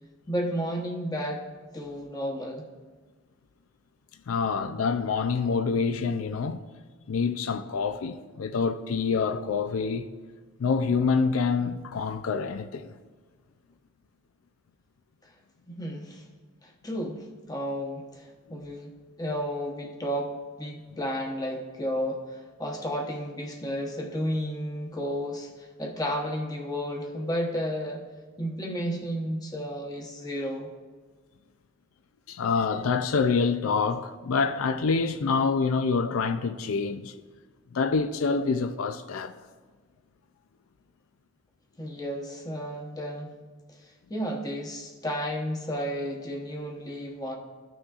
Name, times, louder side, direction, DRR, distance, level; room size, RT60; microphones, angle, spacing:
voice 1, 0.3-1.5 1.7-2.7 15.7-16.2 16.6-18.9 19.2-28.1 28.4-30.7 41.8-43.4 44.1-47.4, equal, 20° left, 0.9 m, -32 dB
voice 2, 4.3-6.6 7.1-10.1 10.6-12.9 32.3-37.1 37.7-39.3, left 5 dB, 80° left, 0.4 m, -26 dB
14.5 x 6.1 x 2.4 m
head